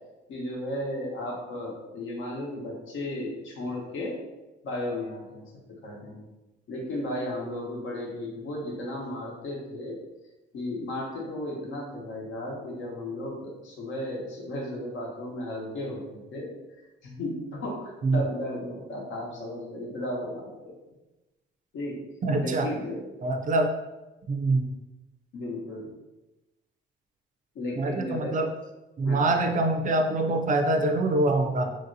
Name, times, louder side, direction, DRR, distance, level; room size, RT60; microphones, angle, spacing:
voice 1, 0.3-4.2 4.6-5.5 5.8-6.3 6.7-10.0 10.5-16.5 17.0-20.7 21.7-22.0 22.4-23.0 25.3-25.9 27.5-28.4 29.0-29.5, left 1 dB, 75° left, -2 dB, 0.9 m, -34 dB
voice 2, 22.2-22.7 23.2-23.7 24.3-24.7 27.8-28.5 29.0-31.7, right 2 dB, 40° right, 5 dB, 0.4 m, -24 dB
3.0 x 2.7 x 2.6 m, 1.0 s
cardioid pair, 90°, 20 cm